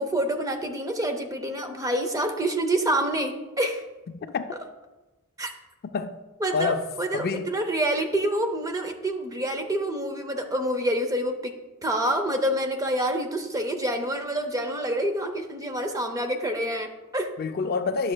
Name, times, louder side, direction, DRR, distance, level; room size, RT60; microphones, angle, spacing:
voice 1, 0.0-3.8 5.4-5.5 6.4-11.5 11.8-17.3, right 1 dB, 15° right, 0.6 m, -27 dB
voice 2, 4.1-4.5 5.9-6.2 6.5-6.9 7.1-7.5 17.4-18.1, left 5 dB, 45° left, 0.4 m, -27 dB
10.5 x 6.4 x 2.2 m
head